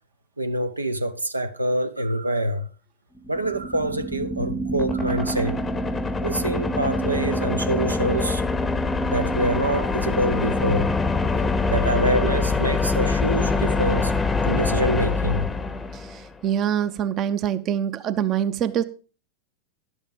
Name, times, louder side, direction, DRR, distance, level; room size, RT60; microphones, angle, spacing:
voice 1, 0.4-2.7 3.3-5.6 6.2-8.4 9.1-10.9 11.7-14.1 14.4-15.5, right 1 dB, 80° right, 0.7 m, -25 dB
sound 1, 3.2-16.3, left 3 dB, 15° left, 0.7 m, -24 dB
voice 2, 16.4-18.8, right 9 dB, 30° right, 0.7 m, -24 dB
11.5 x 7.3 x 5.1 m
figure-of-eight pair, 90°, 0 cm